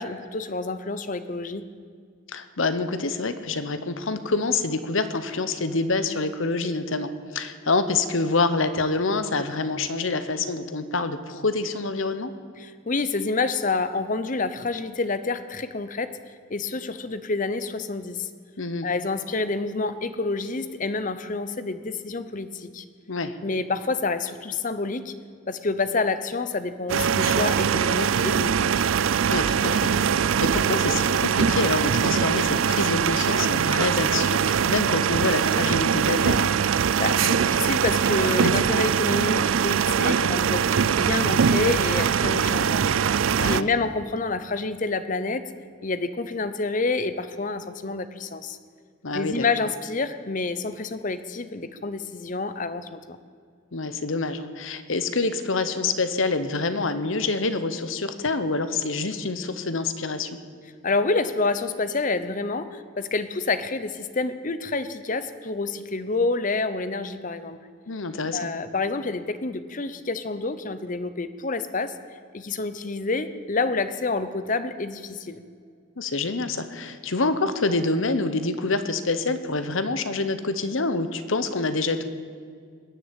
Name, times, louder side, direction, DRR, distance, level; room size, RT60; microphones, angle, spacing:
voice 1, 0.0-1.6 12.6-16.2 16.5-18.3 18.8-22.8 23.4-25.1 25.5-28.9 36.9-42.8 43.5-45.5 45.8-48.6 49.1-53.2 60.8-67.6 68.3-72.0 72.3-75.4, left 3 dB, 40° left, 12 dB, 0.8 m, -28 dB
voice 2, 2.3-12.3 18.6-18.9 23.1-23.3 29.3-36.5 43.4-43.7 49.0-49.5 53.7-60.4 67.9-68.5 76.0-82.0, left 3 dB, 70° left, 11 dB, 1.1 m, -26 dB
sound 1, 26.9-43.6, right 7 dB, 70° right, 0.4 m, -22 dB
20.5 x 7.7 x 8.8 m, 2.1 s
head